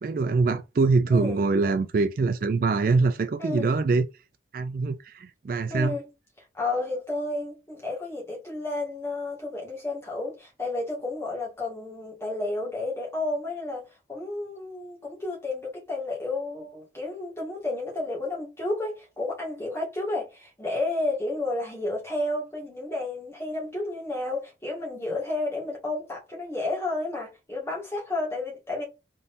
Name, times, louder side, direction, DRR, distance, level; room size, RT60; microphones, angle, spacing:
voice 1, 0.0-4.1 4.5-6.0, right 3 dB, 50° right, 0.3 m, -24 dB
voice 2, 3.4-3.7 5.7-6.1 6.5-13.8 14.1-28.8, left 2 dB, 15° left, 1.8 m, -31 dB
3.9 x 3.8 x 2.6 m
head